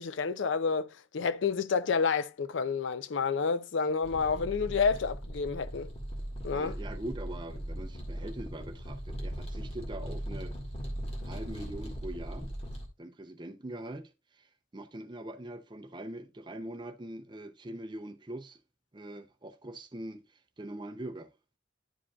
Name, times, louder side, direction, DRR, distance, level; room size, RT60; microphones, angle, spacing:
voice 1, 0.0-5.9 6.4-6.8, left 5 dB, 75° left, 0.5 m, -29 dB
sound 1, 4.0-12.9, equal, 30° left, 1.7 m, -39 dB
voice 2, 6.5-10.5 11.2-12.5 13.0-18.6 18.9-21.3, right 1 dB, 25° right, 0.6 m, -42 dB
11.0 x 5.0 x 2.3 m
head